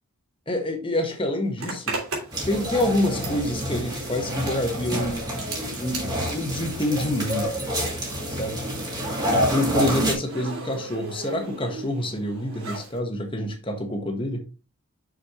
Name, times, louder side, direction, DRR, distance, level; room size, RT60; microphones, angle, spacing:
voice 1, 0.5-2.0 2.5-7.7 8.3-8.6 9.5-14.4, left 1 dB, 25° left, 1.4 m, -27 dB
Zipper (clothing), 1.6-7.8 8.0-13.0, right 3 dB, 85° right, 3.1 m, -38 dB
sound 1, 2.3-10.1, equal, 20° right, 2.2 m, -28 dB
6.5 x 6.4 x 3.1 m
head